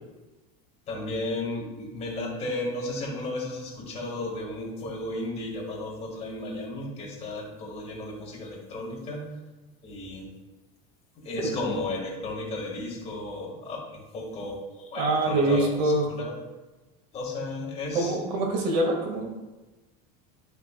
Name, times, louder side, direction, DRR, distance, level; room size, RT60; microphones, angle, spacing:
voice 1, 0.9-9.3 9.8-10.3 11.2-16.4 17.1-18.1, left 2 dB, 30° left, -1 dB, 2.3 m, -34 dB
voice 2, 14.9-16.1 17.9-19.3, right 2 dB, 85° right, 0 dB, 2.5 m, -24 dB
12.5 x 5.9 x 2.5 m, 1.1 s
cardioid pair, 150°, 20 cm